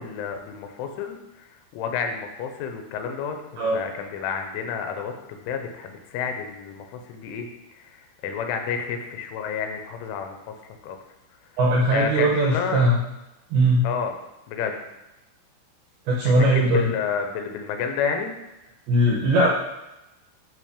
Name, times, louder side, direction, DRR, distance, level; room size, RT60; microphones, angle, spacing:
voice 1, 0.0-1.5 1.7-10.6 10.8-11.0 11.9-12.9 13.8-14.1 14.5-14.8 16.2-18.3, left 6 dB, 90° left, 5 dB, 3.2 m, -30 dB
voice 2, 11.6-13.0 13.5-13.8 16.1-16.9 18.9-19.5, right 1 dB, 80° right, -2 dB, 2.2 m, -19 dB
10.5 x 3.5 x 5.1 m, 0.98 s
omnidirectional pair, 5.6 m